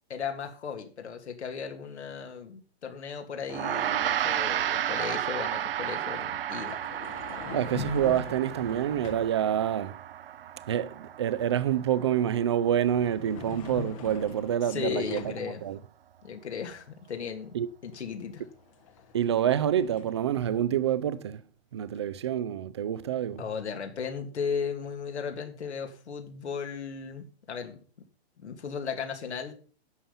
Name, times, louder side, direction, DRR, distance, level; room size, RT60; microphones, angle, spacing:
voice 1, 0.1-6.8 14.7-15.6 16.2-17.5 17.8-18.4 23.4-27.8 28.4-29.5, left 6 dB, 90° left, 2.7 m, -36 dB
Gong, 3.5-13.0, right 11 dB, 60° right, 0.7 m, -33 dB
sound 1, 4.2-4.4 6.5-9.4 12.1-12.3 12.7-15.5 17.9-18.0 18.3-20.6, left 6 dB, 30° left, 0.9 m, -43 dB
voice 2, 7.5-10.0 10.7-15.8 17.5-17.7 19.1-21.4 21.7-23.4, right 10 dB, 25° right, 0.4 m, -27 dB
11.0 x 7.2 x 5.6 m
hypercardioid pair, 165°, 33 cm